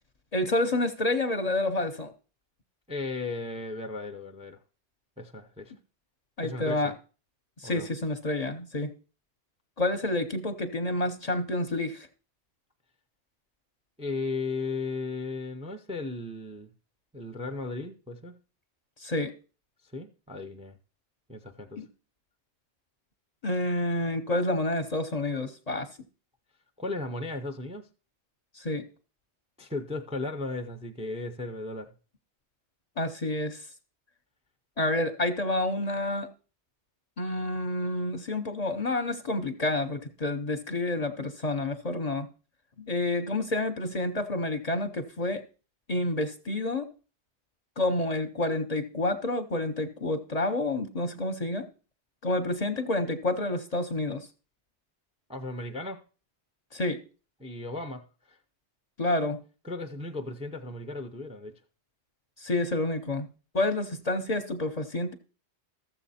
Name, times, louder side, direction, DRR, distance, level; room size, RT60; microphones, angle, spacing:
voice 1, 0.3-2.1 6.4-6.9 7.6-8.9 9.8-12.1 19.0-19.3 21.8-21.9 23.4-25.9 28.6-28.8 33.0-33.6 34.8-36.3 37.2-42.3 42.8-45.4 45.9-46.9 47.8-51.7 52.2-54.3 56.7-57.0 59.0-59.4 62.4-63.3 63.5-65.1, left 2 dB, 40° left, 0.8 m, -29 dB
voice 2, 2.9-4.6 5.2-5.7 6.4-6.9 7.6-7.9 14.0-16.7 17.1-18.4 19.9-20.8 21.3-21.8 26.8-27.9 29.6-31.9 55.3-56.0 57.4-58.4 59.6-61.6, left 3 dB, 5° right, 0.5 m, -36 dB
13.5 x 7.2 x 4.2 m
omnidirectional pair, 1.2 m